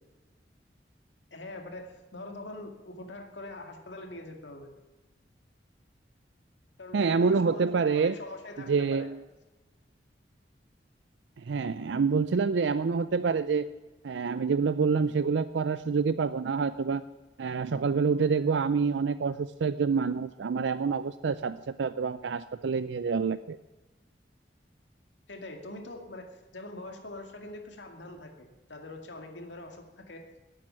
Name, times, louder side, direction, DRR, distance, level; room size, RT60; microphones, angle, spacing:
voice 1, 1.3-4.7 6.8-9.1 25.3-30.2, left 2 dB, 85° left, 4 dB, 2.2 m, -43 dB
voice 2, 6.9-8.2 8.6-9.2 11.5-13.7 14.0-17.0 17.4-23.6, right 5 dB, 80° right, 13 dB, 0.4 m, -27 dB
12.5 x 8.7 x 10.0 m, 1.1 s
head